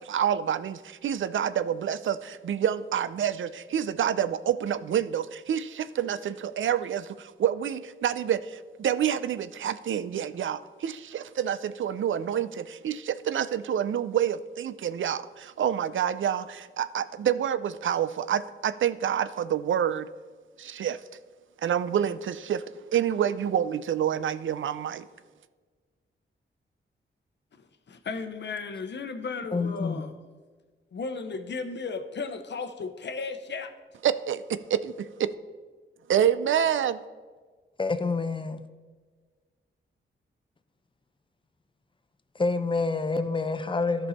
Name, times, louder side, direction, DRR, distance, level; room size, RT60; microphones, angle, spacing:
voice 1, 0.0-20.1 20.6-21.0 21.6-22.6 22.9-25.1 34.0-35.3 36.1-37.0, right 9 dB, 70° right, 14 dB, 0.4 m, -28 dB
voice 2, 27.6-30.1 30.9-33.7, left 4 dB, 60° left, 8 dB, 0.8 m, -35 dB
voice 3, 29.5-30.0 37.8-38.6 42.3-44.1, left 3 dB, 25° left, 11 dB, 0.6 m, -27 dB
13.5 x 5.5 x 4.1 m, 1.5 s
cardioid pair, 80°, 21 cm